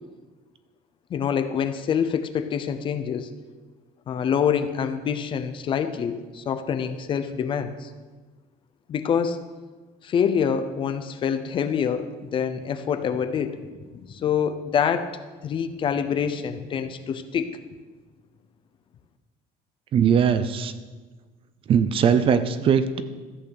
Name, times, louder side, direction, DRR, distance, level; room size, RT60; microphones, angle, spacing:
voice 1, 1.1-3.3 4.1-7.9 8.9-9.4 10.0-15.1 15.4-17.6, left 7 dB, 30° left, 10 dB, 0.6 m, -26 dB
voice 2, 19.9-20.7 21.7-23.0, right 7 dB, 35° right, 12 dB, 0.6 m, -20 dB
14.0 x 8.3 x 6.5 m, 1.3 s
cardioid pair, 180°, 16 cm